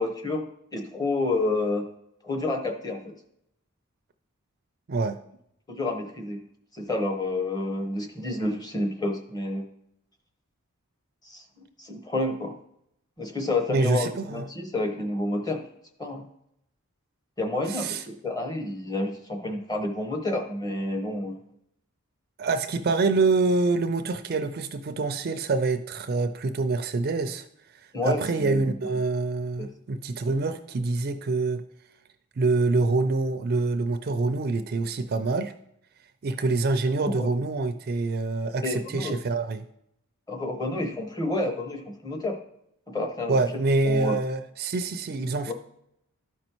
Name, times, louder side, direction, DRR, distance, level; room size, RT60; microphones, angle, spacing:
voice 1, 0.0-1.9 2.2-3.1 5.7-6.4 6.7-9.6 11.2-12.6 13.2-15.6 16.0-16.2 17.4-21.4 27.9-28.7 29.6-29.7 37.0-37.3 38.6-39.2 40.3-42.4 42.9-43.4 43.8-44.2 45.5-45.6, left 2 dB, 15° left, 5 dB, 0.9 m, -29 dB
voice 2, 13.7-14.4 17.7-18.0 22.4-27.5 28.0-31.6 32.4-35.5 36.2-39.6 43.3-45.5, right 3 dB, 45° right, 9 dB, 0.4 m, -26 dB
12.5 x 5.2 x 3.0 m, 0.76 s
head